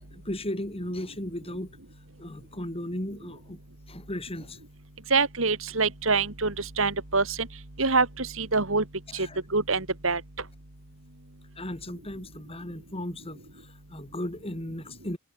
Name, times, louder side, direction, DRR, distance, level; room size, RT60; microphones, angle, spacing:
voice 1, 0.0-1.8 2.2-3.6 3.9-4.6 9.1-9.4 11.6-15.2, left 1 dB, 30° left, 5.2 m, -36 dB
voice 2, 5.1-7.5 7.8-8.8 9.1-9.3 9.5-10.2, right 4 dB, 70° right, 3.0 m, -25 dB
head